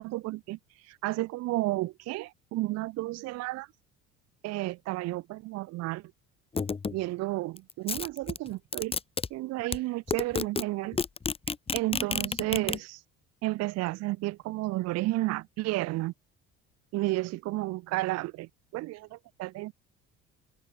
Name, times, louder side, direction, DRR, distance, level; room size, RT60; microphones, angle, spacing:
voice 1, 0.0-3.7 4.4-6.0 6.9-8.9 9.3-11.0 11.7-13.0 13.4-16.1 16.9-19.7, right 19 dB, 55° right, 0.5 m, -32 dB
sound 1, 6.5-7.0 7.6-9.3 9.7-9.8 10.1-10.6 10.9-12.8, left 5 dB, 20° left, 0.7 m, -30 dB
supercardioid pair, 80°, 31 cm